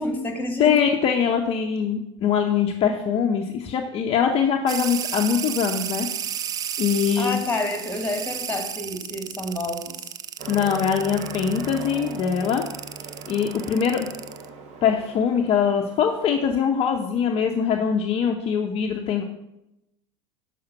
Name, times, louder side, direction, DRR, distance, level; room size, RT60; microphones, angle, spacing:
voice 1, 0.0-0.7 7.2-10.1, left 2 dB, 10° left, 4 dB, 1.8 m, -29 dB
voice 2, 0.6-6.1 6.8-7.4 10.5-12.6 13.3-14.1 14.8-19.2, left 7 dB, 40° left, 3 dB, 0.7 m, -22 dB
sound 1, 4.7-14.5, right 9 dB, 25° right, 0.4 m, -33 dB
Aircraft, 10.4-16.9, right 4 dB, 45° right, 1.3 m, -39 dB
6.5 x 5.0 x 6.9 m, 0.88 s
figure-of-eight pair, 80°, 16 cm